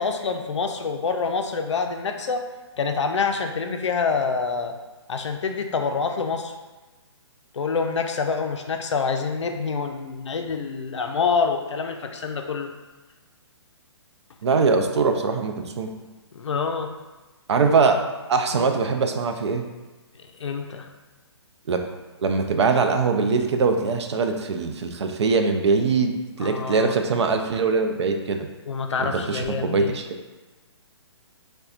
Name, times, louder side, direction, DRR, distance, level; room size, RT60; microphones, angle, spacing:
voice 1, 0.0-2.4 2.8-4.7 5.1-6.5 7.5-12.7 16.3-16.9 20.4-20.9 26.4-27.0 28.7-30.0, left 5 dB, 85° left, 5 dB, 0.4 m, -26 dB
voice 2, 14.4-15.9 17.5-18.0 18.3-19.6 21.7-21.8 22.2-26.1 26.4-28.5 29.0-30.0, right 4 dB, 70° right, 5 dB, 0.4 m, -22 dB
4.2 x 2.2 x 2.4 m, 1.2 s
hypercardioid pair, 150°, 15 cm